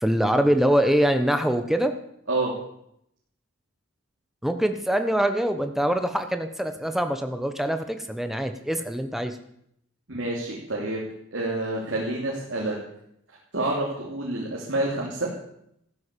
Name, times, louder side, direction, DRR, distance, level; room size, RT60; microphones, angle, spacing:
voice 1, 0.0-1.9 4.4-9.4, equal, ahead, 7 dB, 1.1 m, -24 dB
voice 2, 10.1-11.0 11.3-12.8 13.5-15.3, right 2 dB, 55° right, -3 dB, 3.2 m, -28 dB
14.5 x 12.0 x 6.9 m, 0.75 s
head